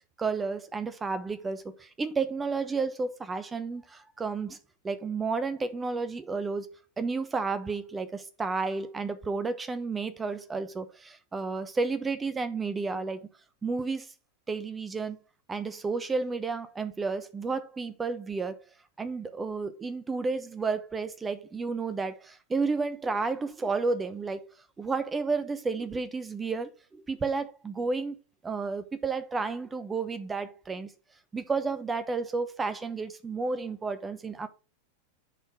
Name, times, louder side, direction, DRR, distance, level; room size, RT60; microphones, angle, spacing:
voice 1, 0.2-4.6 4.8-6.7 7.0-13.3 13.6-14.1 14.5-15.2 15.5-18.6 19.0-24.4 24.8-28.2 28.4-30.9 31.3-34.5, right 4 dB, 15° right, 1.0 m, -31 dB
10.0 x 4.5 x 3.6 m
figure-of-eight pair, 90°, 0 cm